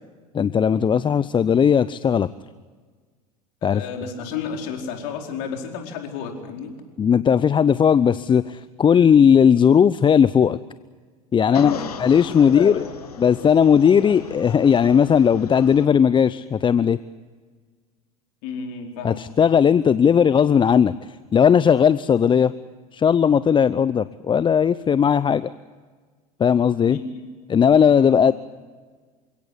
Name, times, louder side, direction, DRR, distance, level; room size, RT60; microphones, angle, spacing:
voice 1, 0.3-2.3 3.6-3.8 7.0-10.6 11.3-12.8 13.2-17.0 19.0-20.9 21.3-22.5 22.9-25.5 26.4-27.0 27.5-28.3, left 7 dB, 25° left, 16 dB, 0.7 m, -17 dB
voice 2, 3.6-6.7 11.4-11.9 12.4-12.9 18.4-19.3 26.9-27.2 28.0-28.3, left 6 dB, 65° left, 2 dB, 4.6 m, -32 dB
sound 1, 11.5-15.9, left 7 dB, 80° left, 2.0 m, -36 dB
28.5 x 17.0 x 8.4 m, 1.5 s
hypercardioid pair, 75°, 19 cm